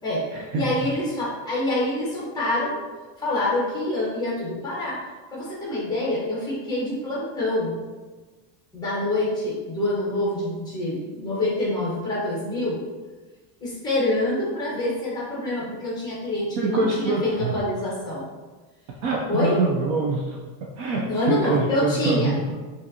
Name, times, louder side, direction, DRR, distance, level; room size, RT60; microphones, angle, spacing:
voice 1, 0.0-2.8 3.2-5.0 5.3-7.8 8.7-12.8 13.6-18.3 19.3-19.6 21.1-22.3, left 1 dB, 10° left, -6 dB, 0.9 m, -26 dB
voice 2, 16.6-17.6 19.0-20.4 20.8-22.6, right 3 dB, 45° right, -1 dB, 0.4 m, -24 dB
5.3 x 2.6 x 2.6 m, 1.3 s
cardioid pair, 175°, 42 cm